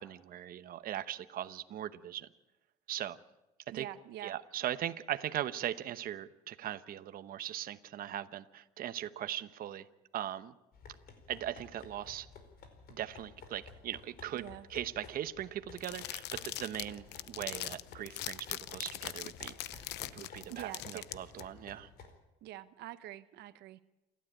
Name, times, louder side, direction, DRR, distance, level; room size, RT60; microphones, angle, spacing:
voice 1, 0.0-2.3 2.9-3.2 3.7-3.9 4.2-9.9 10.1-10.5 11.3-12.3 12.9-19.8 20.1-21.9, right 11 dB, 60° right, 11 dB, 1.0 m, -39 dB
voice 2, 3.7-4.4 14.3-14.7 20.5-21.0 22.4-23.8, right 13 dB, 80° right, 12 dB, 1.0 m, -45 dB
sound 1, 10.7-22.2, left 5 dB, 65° left, 4.7 m, -54 dB
sound 2, 15.5-16.1 16.4-16.5 17.2-17.3 18.1-18.3 18.7-18.8 19.4-20.5, left 1 dB, ahead, 5.3 m, -62 dB
sound 3, 15.8-21.4, left 16 dB, 85° left, 0.8 m, -41 dB
28.5 x 12.5 x 9.0 m, 0.99 s
cardioid pair, 110°, 17 cm